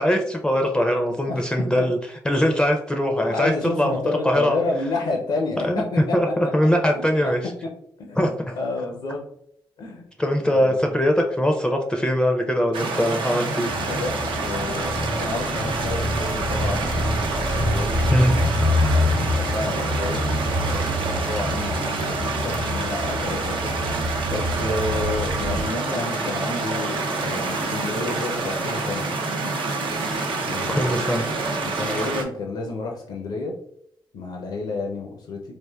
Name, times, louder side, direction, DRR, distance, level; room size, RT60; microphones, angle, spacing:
voice 1, 0.0-4.6 5.6-7.5 8.2-8.6 10.2-13.7 18.1-18.3 30.7-31.3 31.7-32.1, equal, 10° left, 2 dB, 0.4 m, -22 dB
voice 2, 3.2-6.1 6.9-7.3 7.6-7.7 8.0-8.2 8.6-9.2 9.8-10.1 10.5-10.9 13.9-18.2 19.0-23.7 24.2-29.0 30.4-30.9 31.6-33.5 34.1-35.4, left 3 dB, 80° left, 0 dB, 0.5 m, -30 dB
sound 1, 12.7-32.2, right 3 dB, 75° right, 0.5 m, -27 dB
sound 2, 13.7-25.6, left 1 dB, 60° right, 0.9 m, -26 dB
3.4 x 2.4 x 2.2 m, 0.71 s
cardioid pair, 60°, 8 cm